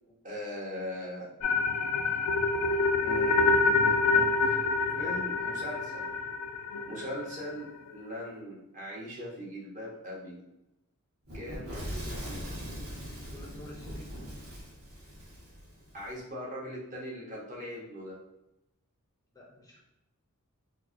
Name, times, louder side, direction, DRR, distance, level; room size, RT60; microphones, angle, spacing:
voice 1, 0.2-1.3 3.0-4.6 5.0-6.1 6.8-10.4 11.3-12.5 15.9-18.2, equal, 35° right, -4 dB, 0.9 m, -40 dB
sound 1, 1.4-7.5, left 3 dB, 85° left, 0.4 m, -27 dB
Fire / Explosion, 11.3-16.1, equal, 70° right, 1.3 m, -41 dB
voice 2, 13.3-14.2 19.4-19.8, left 1 dB, 15° left, -3 dB, 0.4 m, -49 dB
4.1 x 2.1 x 2.5 m, 0.89 s
head